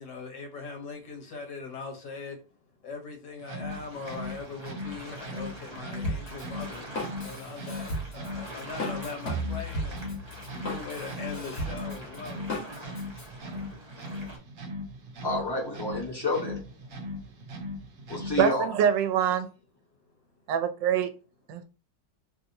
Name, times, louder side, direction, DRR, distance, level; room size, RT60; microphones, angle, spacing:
voice 1, 0.0-2.4 2.8-10.1 10.5-12.4 12.8-13.1, left 4 dB, 75° left, 1.6 m, -40 dB
sound 1, 3.4-18.6, left 1 dB, 60° right, 0.9 m, -39 dB
sound 2, 3.7-14.4, equal, 30° right, 0.5 m, -45 dB
Drum kit, 6.0-13.3, equal, 45° left, 1.4 m, -35 dB
voice 2, 15.2-16.6 18.1-18.7, left 2 dB, 20° left, 0.7 m, -29 dB
voice 3, 18.4-19.5 20.5-21.1 21.5-21.6, right 8 dB, 85° right, 1.3 m, -24 dB
3.3 x 2.7 x 2.6 m
omnidirectional pair, 1.9 m